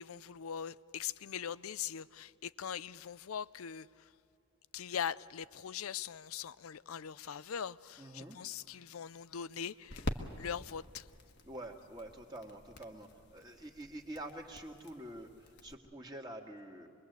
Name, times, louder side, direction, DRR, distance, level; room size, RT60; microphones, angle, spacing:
voice 1, 0.0-4.1 4.7-11.1, left 8 dB, 85° left, 0.5 m, -41 dB
sound 1, 7.8-15.7, left 1 dB, 55° left, 1.4 m, -46 dB
voice 2, 8.0-8.4 11.4-16.9, right 1 dB, 20° right, 1.8 m, -47 dB
26.0 x 22.0 x 8.1 m
head